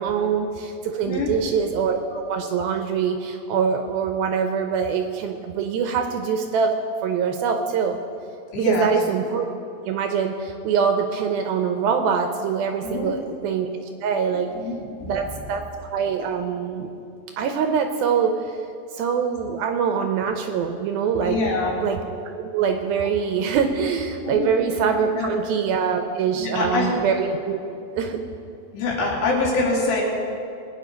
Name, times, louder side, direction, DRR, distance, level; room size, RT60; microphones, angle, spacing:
voice 1, 0.0-6.7 7.0-8.0 8.6-9.5 9.9-13.7 14.0-14.5 15.0-16.9 17.4-18.6 18.9-21.4 21.8-22.0 22.4-27.6 28.0-28.2, right 6 dB, 75° right, 5 dB, 2.3 m, -24 dB
voice 2, 1.1-1.4 8.5-8.9 12.8-13.2 14.5-15.1 21.2-21.8 24.2-24.5 25.0-25.3 26.3-27.1 28.7-30.0, left 3 dB, 75° left, -3 dB, 4.7 m, -25 dB
22.0 x 9.5 x 5.2 m, 2.7 s
omnidirectional pair, 4.8 m